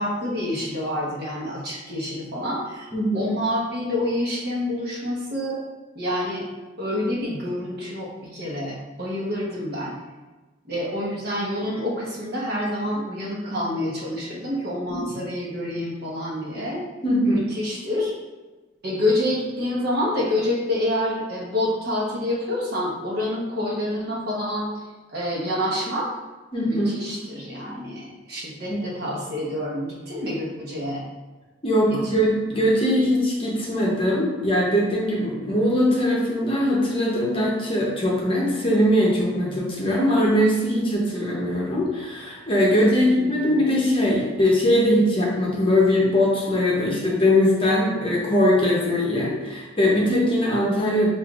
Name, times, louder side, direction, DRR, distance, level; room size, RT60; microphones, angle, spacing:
voice 1, 0.0-5.6 5.9-6.4 6.8-10.0 10.7-16.8 17.2-18.1 18.8-24.8 25.1-26.1 26.7-31.1 31.9-32.1 42.7-43.6, left 1 dB, 50° right, -4 dB, 1.0 m, -27 dB
voice 2, 2.9-3.3 14.9-15.0 17.0-17.4 26.5-27.0 28.7-28.8 31.6-51.1, left 1 dB, 25° left, -4 dB, 0.8 m, -21 dB
6.4 x 2.5 x 2.4 m, 1.2 s
head